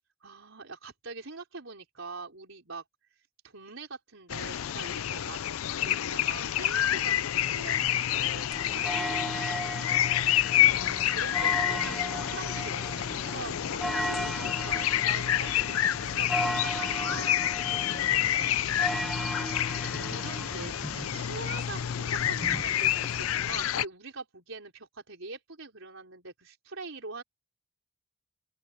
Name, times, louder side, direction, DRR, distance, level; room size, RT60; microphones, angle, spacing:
voice 1, 0.2-2.8 3.4-5.4 5.7-9.4 10.8-17.4 18.2-18.6 19.3-27.2, right 3 dB, 70° right, 5.3 m, -43 dB
sound 1, 4.3-23.9, left 11 dB, 85° left, 0.5 m, -28 dB
sound 2, 8.5-23.3, equal, ahead, 1.4 m, -37 dB
open air
head